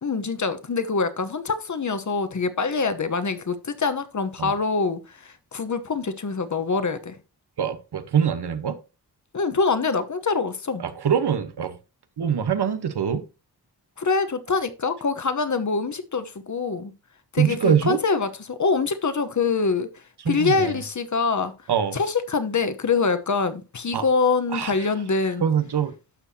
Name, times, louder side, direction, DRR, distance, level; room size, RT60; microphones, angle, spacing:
voice 1, 0.0-7.2 9.3-10.8 14.0-16.9 17.3-19.9 20.3-21.5 21.9-25.4, left 4 dB, 45° left, 1.0 m, -24 dB
voice 2, 7.6-8.8 10.8-11.8 12.2-13.3 17.4-18.0 20.2-20.8 21.7-22.0 23.9-24.0 24.5-24.9 25.4-25.9, right 8 dB, 85° right, 1.1 m, -24 dB
12.0 x 6.8 x 2.8 m
wide cardioid pair, 90°, 39 cm